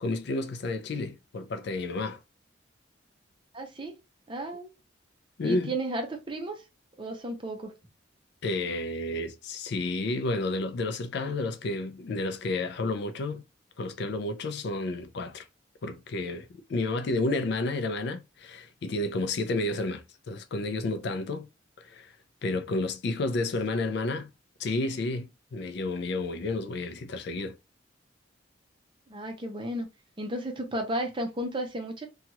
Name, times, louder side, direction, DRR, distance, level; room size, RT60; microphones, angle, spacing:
voice 1, 0.0-2.2 5.4-5.7 8.4-13.4 13.8-15.4 15.8-21.5 21.8-22.1 22.4-24.3 24.6-27.5, left 2 dB, 60° left, 0.4 m, -31 dB
voice 2, 3.5-4.0 4.3-4.7 5.4-6.6 7.0-7.7 29.1-29.9 30.2-32.1, right 1 dB, 25° right, 0.6 m, -33 dB
2.8 x 2.3 x 2.8 m
head